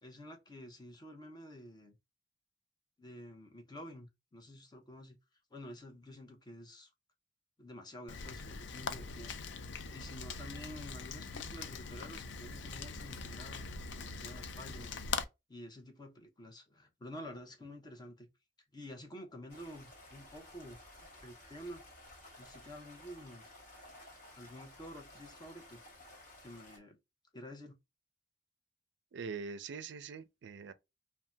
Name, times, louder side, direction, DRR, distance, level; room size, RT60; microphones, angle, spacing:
voice 1, 0.0-2.0 3.0-5.2 5.5-6.9 7.6-9.4 9.9-15.1 15.5-18.3 18.7-21.0 21.2-21.8 22.4-23.5 24.4-25.8 26.4-27.0 27.3-27.8, left 1 dB, 20° left, 0.7 m, -50 dB
Rain, 8.1-15.2, left 5 dB, 65° left, 0.4 m, -42 dB
Stream, 19.5-26.8, left 1 dB, 45° left, 1.6 m, -55 dB
voice 2, 29.1-30.7, right 5 dB, 70° right, 0.4 m, -43 dB
2.7 x 2.1 x 3.3 m
head